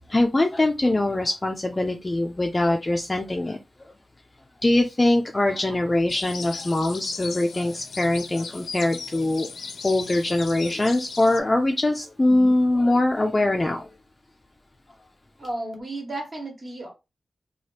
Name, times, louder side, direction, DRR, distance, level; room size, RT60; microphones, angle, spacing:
voice 1, 0.1-3.6 4.6-9.5 9.8-13.9, left 2 dB, 20° left, 0.3 m, -22 dB
sound 1, 6.1-11.4, left 5 dB, 85° left, 0.4 m, -37 dB
voice 2, 15.4-16.9, right 2 dB, 40° right, 1.0 m, -33 dB
2.9 x 2.3 x 3.2 m
wide cardioid pair, 160°, 0 cm